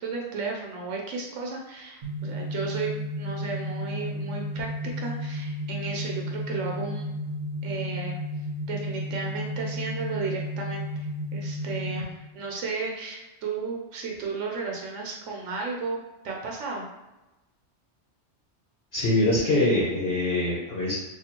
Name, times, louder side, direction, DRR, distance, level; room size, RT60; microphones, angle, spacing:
voice 1, 0.0-2.9 3.2-4.7 5.0-7.1 7.6-8.2 8.7-11.1 11.3-16.9, right 4 dB, 85° right, -1 dB, 1.0 m, -34 dB
sound 1, 2.0-12.0, left 1 dB, 60° right, 1.1 m, -33 dB
voice 2, 18.9-20.9, left 1 dB, 60° left, -6 dB, 0.9 m, -23 dB
2.9 x 2.6 x 4.1 m, 1.0 s
omnidirectional pair, 1.2 m